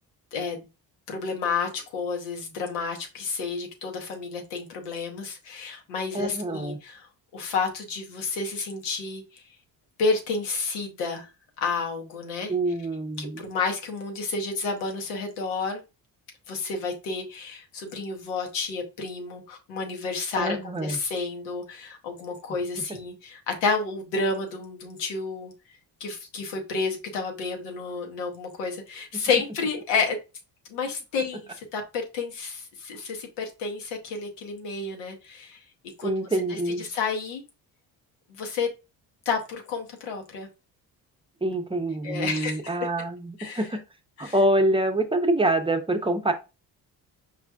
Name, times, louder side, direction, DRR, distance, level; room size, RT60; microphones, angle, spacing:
voice 1, 1.1-7.1 7.3-9.4 10.0-11.3 11.6-12.5 13.2-15.8 16.5-25.5 26.0-30.2 30.7-35.6 36.0-36.1 36.5-37.4 38.3-38.7 39.2-40.5 42.0-42.6 43.4-43.7 44.2-44.3, left 4 dB, 90° left, 2 dB, 1.0 m, -30 dB
voice 2, 6.1-6.8 12.5-13.4 20.4-21.0 29.1-29.2 36.0-36.8 41.4-43.8 44.2-46.3, right 1 dB, 10° right, 6 dB, 0.6 m, -26 dB
4.8 x 2.5 x 2.2 m, 0.28 s
supercardioid pair, 60°, 46 cm